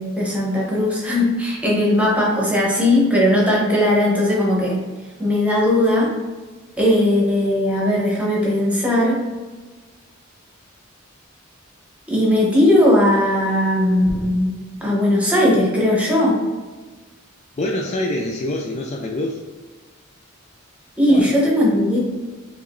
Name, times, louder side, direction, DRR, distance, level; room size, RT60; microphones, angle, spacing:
voice 1, 0.0-4.8 5.2-6.1 6.8-9.2 12.1-14.5 14.8-16.4 21.0-22.0, left 1 dB, 5° right, -4 dB, 0.9 m, -18 dB
voice 2, 17.6-19.4 21.1-21.4, left 1 dB, 30° left, 0 dB, 0.3 m, -25 dB
4.7 x 2.9 x 2.6 m, 1.3 s
head